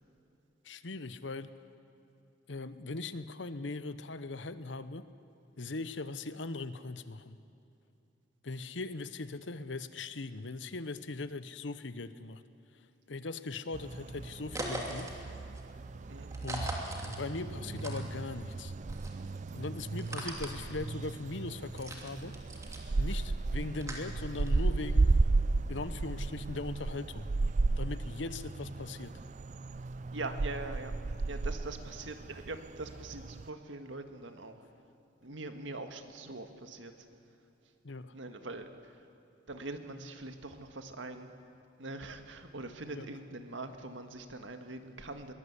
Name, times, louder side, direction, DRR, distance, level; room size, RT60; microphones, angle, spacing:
voice 1, 0.6-1.5 2.5-5.1 5.6-7.4 8.4-12.4 13.1-15.1 16.4-16.7 17.0-18.7 19.5-22.4 23.0-25.1 25.7-27.3 27.8-29.1 37.8-38.1 42.9-43.0, left 3 dB, 80° left, 13 dB, 1.0 m, -40 dB
sound 1, 13.7-33.5, right 3 dB, 40° right, 0.4 m, -34 dB
sound 2, 14.5-18.5 18.8-24.8, right 1 dB, 15° right, 2.7 m, -42 dB
voice 2, 30.1-30.9 31.2-34.6 35.2-36.9 38.1-39.0 39.5-41.3 41.8-45.3, right 2 dB, 85° right, 7 dB, 1.8 m, -43 dB
22.5 x 19.5 x 8.3 m, 2.8 s
head